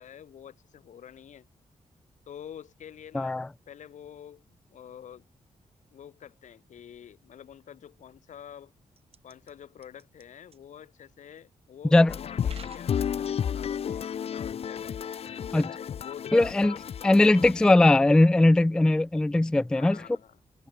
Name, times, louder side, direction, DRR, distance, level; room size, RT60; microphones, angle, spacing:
voice 1, 0.0-1.5 2.3-3.4 3.7-5.3 5.9-8.7 9.2-16.6 19.8-20.4, left 9 dB, 80° left, 2.4 m, -47 dB
voice 2, 3.1-3.5 11.9-12.2 15.5-15.6 16.3-16.7 17.0-20.0, left 2 dB, 5° left, 0.3 m, -20 dB
sound 1, 9.0-9.5 9.8-10.2 10.5-10.6 11.4-11.5 12.4-12.9 13.4-14.0, right 7 dB, 50° right, 6.3 m, -50 dB
sound 2, 12.1-17.7, left 8 dB, 55° left, 0.7 m, -32 dB
wide cardioid pair, 170°, 13 cm